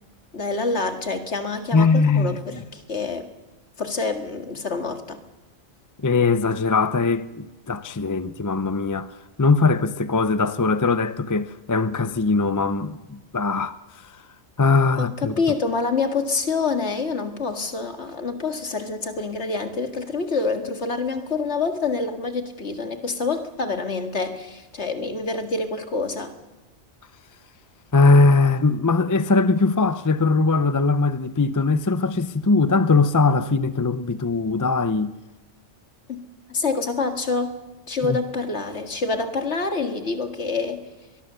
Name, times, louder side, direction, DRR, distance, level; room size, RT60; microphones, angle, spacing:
voice 1, 0.3-3.3 3.8-5.2 15.0-26.3 36.1-36.2 36.5-37.5 37.9-40.8, left 4 dB, 65° left, 2.2 m, -26 dB
voice 2, 1.7-2.4 6.0-9.1 9.4-13.8 14.6-15.3 27.9-35.1 38.0-38.2, left 3 dB, 20° left, 0.5 m, -20 dB
23.5 x 20.0 x 6.8 m
omnidirectional pair, 1.2 m